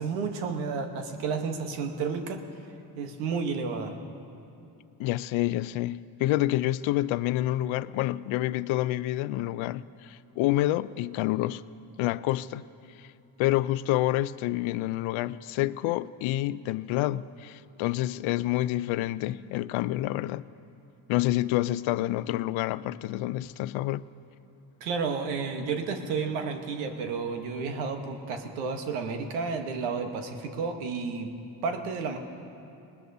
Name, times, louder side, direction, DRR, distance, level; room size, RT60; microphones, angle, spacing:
voice 1, 0.0-2.4 3.0-4.0 24.8-31.3 31.6-32.2, right 5 dB, 85° right, 1.2 m, -31 dB
voice 2, 5.0-11.6 12.0-12.6 13.4-20.4 21.1-24.0, left 15 dB, 70° left, 0.5 m, -28 dB
20.0 x 19.5 x 2.7 m
hypercardioid pair, 45°, 50 cm